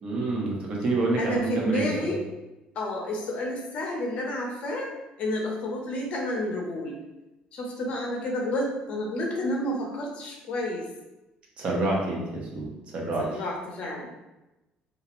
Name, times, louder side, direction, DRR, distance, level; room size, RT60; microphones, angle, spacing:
voice 1, 0.0-2.1 11.6-13.3, right 2 dB, 40° right, -2 dB, 0.5 m, -28 dB
voice 2, 1.2-2.2 2.8-4.9 5.2-7.0 7.5-10.9 13.2-14.1, left 1 dB, 50° left, 0 dB, 0.5 m, -30 dB
2.3 x 2.0 x 2.9 m, 1.0 s
cardioid pair, 160°, 3 cm